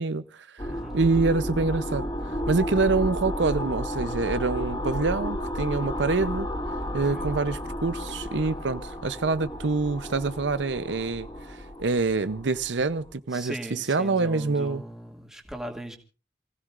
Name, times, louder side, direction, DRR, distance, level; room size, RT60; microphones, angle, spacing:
voice 1, 0.0-0.7 0.9-6.5 6.9-14.8, right 3 dB, 90° right, 0.7 m, -26 dB
sound 1, 0.6-13.1, equal, 25° left, 2.6 m, -33 dB
voice 2, 0.7-1.1 6.8-7.3 8.5-8.6 13.3-16.0, right 1 dB, 5° right, 2.2 m, -39 dB
28.5 x 16.0 x 2.5 m
head